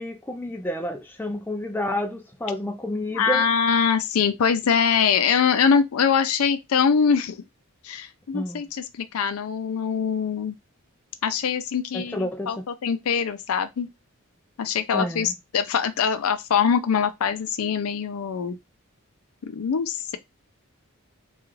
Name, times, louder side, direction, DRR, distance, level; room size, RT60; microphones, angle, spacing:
voice 1, 0.0-3.4 8.3-8.6 11.9-12.6 14.9-15.3, left 1 dB, 10° left, 0.3 m, -30 dB
voice 2, 3.1-7.4 7.8-10.6 11.2-13.9 14.6-18.6 19.4-20.2, left 6 dB, 80° left, 0.4 m, -23 dB
2.4 x 2.3 x 3.1 m
head